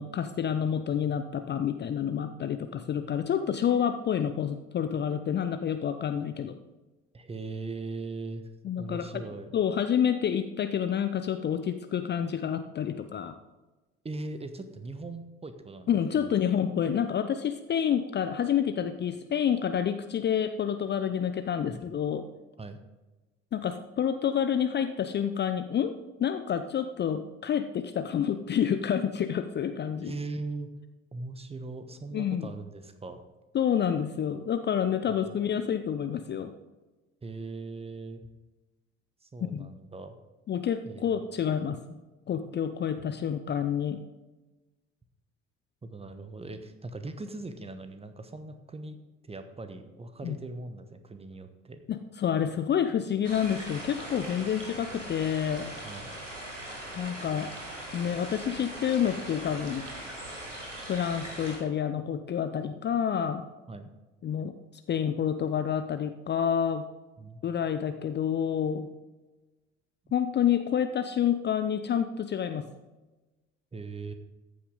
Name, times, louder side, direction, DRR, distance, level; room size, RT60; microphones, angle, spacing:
voice 1, 0.0-6.6 8.6-9.2 9.5-13.4 15.9-22.2 23.5-30.1 32.1-32.5 33.5-36.5 39.5-39.7 40.5-41.8 42.3-44.0 50.2-50.4 51.9-55.7 57.0-57.5 57.9-59.8 60.9-63.5 64.2-64.5 64.9-66.9 67.4-68.9 70.1-72.7, left 8 dB, 30° left, 9 dB, 0.6 m, -28 dB
voice 2, 7.1-8.5 8.8-9.5 14.0-16.3 21.7-21.8 22.6-22.8 30.0-30.7 31.1-33.2 35.1-35.3 37.2-38.3 39.2-40.2 40.8-41.2 45.8-51.8 55.8-56.1 63.7-63.9 67.2-67.4 73.7-74.1, right 3 dB, 15° right, 9 dB, 1.1 m, -40 dB
sound 1, 53.2-61.6, right 1 dB, 90° right, 1.6 m, -40 dB
14.0 x 8.5 x 3.9 m, 1.1 s
figure-of-eight pair, 55°, 36 cm